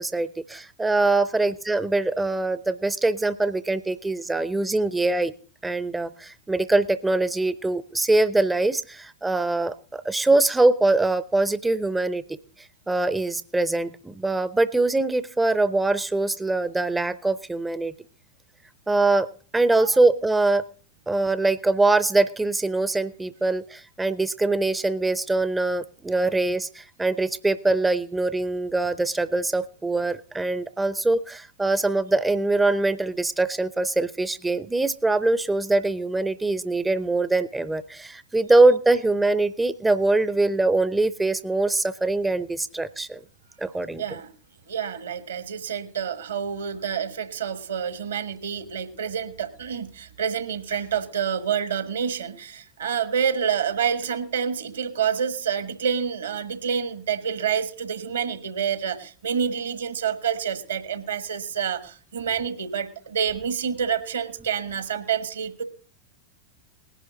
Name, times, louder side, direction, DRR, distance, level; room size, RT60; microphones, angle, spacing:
voice 1, 0.0-5.3 5.6-12.2 12.6-17.9 18.9-19.3 19.5-20.6 21.1-43.2 43.6-44.0, right 2 dB, 10° right, 15 dB, 0.5 m, -23 dB
voice 2, 44.0-44.3 44.7-65.6, right 7 dB, 65° right, 13 dB, 1.3 m, -28 dB
19.0 x 11.0 x 3.9 m, 0.41 s
figure-of-eight pair, 90°, 0 cm